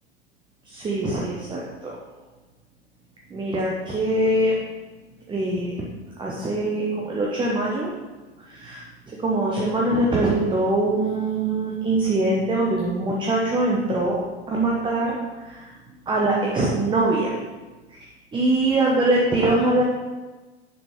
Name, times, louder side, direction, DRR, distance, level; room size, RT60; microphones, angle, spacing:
voice 1, 0.6-2.0 3.3-4.5 5.3-5.8 6.2-7.9 8.4-14.2 14.5-15.7 16.1-17.3 17.9-18.0 18.3-19.8, right 2 dB, 15° right, -3 dB, 0.9 m, -23 dB
6.8 x 5.6 x 3.2 m, 1.2 s
figure-of-eight pair, 85°, 32 cm